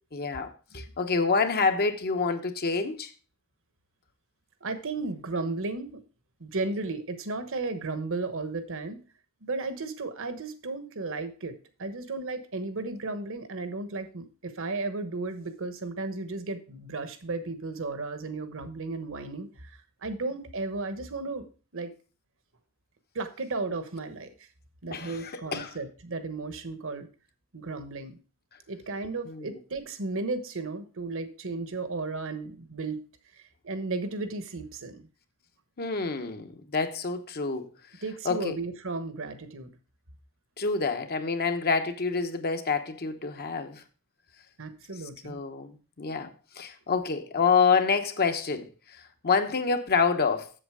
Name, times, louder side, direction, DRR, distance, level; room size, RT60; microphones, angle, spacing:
voice 1, 0.1-3.1 24.9-25.7 29.3-29.6 35.8-37.7 38.2-38.6 40.6-43.8 45.2-49.0 49.2-50.5, left 5 dB, 45° left, 0.9 m, -27 dB
voice 2, 4.6-6.0 6.4-9.0 9.4-19.7 20.0-21.5 21.7-21.9 23.1-24.3 24.8-27.1 27.5-28.2 28.7-33.0 33.4-35.1 38.0-39.7 44.6-45.4, right 3 dB, 60° right, 1.2 m, -34 dB
7.8 x 7.3 x 4.8 m
head